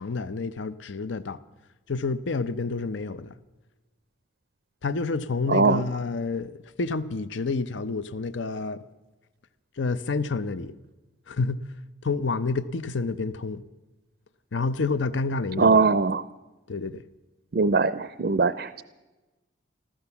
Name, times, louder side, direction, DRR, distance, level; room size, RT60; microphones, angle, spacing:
voice 1, 0.0-1.4 1.9-3.3 4.8-8.8 9.8-10.7 11.3-11.6 12.0-13.6 14.5-15.8 16.7-17.0, left 4 dB, 75° left, 0.6 m, -29 dB
voice 2, 5.5-5.8 15.6-16.2 17.5-18.8, right 4 dB, 55° right, 0.4 m, -21 dB
14.5 x 14.0 x 7.0 m
head